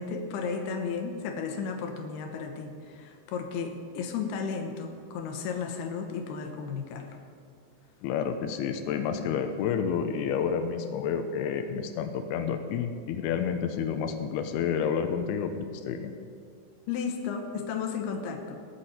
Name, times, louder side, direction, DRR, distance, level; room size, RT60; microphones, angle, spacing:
voice 1, 0.0-7.1 16.9-18.6, left 5 dB, 70° left, 4 dB, 2.7 m, -34 dB
voice 2, 8.0-16.1, left 7 dB, 90° left, 6 dB, 2.3 m, -30 dB
19.0 x 8.3 x 4.4 m, 2.2 s
omnidirectional pair, 5.4 m